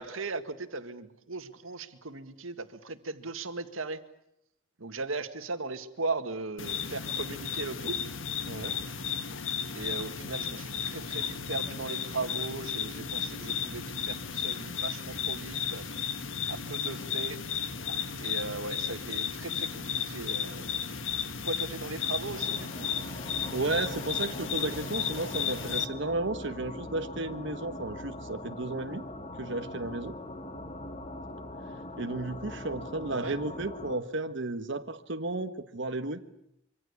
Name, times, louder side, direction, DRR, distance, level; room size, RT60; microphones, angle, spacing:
voice 1, 0.0-4.0 4.8-8.0 9.7-15.8 16.5-17.4 18.2-20.7 21.4-22.9 33.1-33.4, right 3 dB, 85° right, 9 dB, 2.0 m, -38 dB
sound 1, 6.6-25.9, left 7 dB, 70° left, 1.5 m, -34 dB
voice 2, 8.5-8.8 23.5-29.0 29.4-30.1 32.0-36.2, right 2 dB, 60° right, 7 dB, 1.4 m, -33 dB
sound 2, 22.2-34.0, left 1 dB, 30° left, 2.2 m, -42 dB
25.5 x 24.5 x 8.4 m, 0.77 s
head